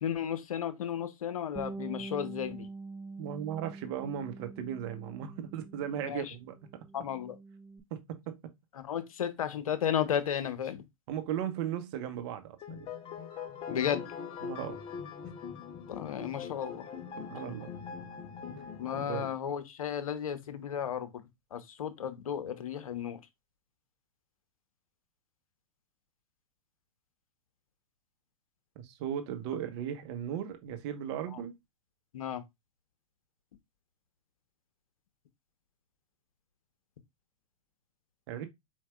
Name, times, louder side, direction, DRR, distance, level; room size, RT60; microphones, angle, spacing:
voice 1, 0.0-2.7 6.0-6.3 6.9-7.4 8.7-10.8 13.7-14.0 15.9-16.9 18.8-21.2 21.5-23.2 31.3-31.4 32.1-32.4, left 9 dB, 75° left, 0.9 m, -34 dB
Bass guitar, 1.6-6.3 6.6-7.8, right 3 dB, 10° right, 0.4 m, -45 dB
voice 2, 3.2-6.8 7.9-8.4 11.1-12.9 14.4-14.8 17.3-17.7 18.5-18.7 19.0-19.2 28.8-31.5 38.3-38.5, right 9 dB, 50° right, 1.0 m, -37 dB
sound 1, 12.6-19.4, left 6 dB, 30° left, 0.8 m, -42 dB
4.6 x 4.5 x 2.3 m
hypercardioid pair, 110°, 18 cm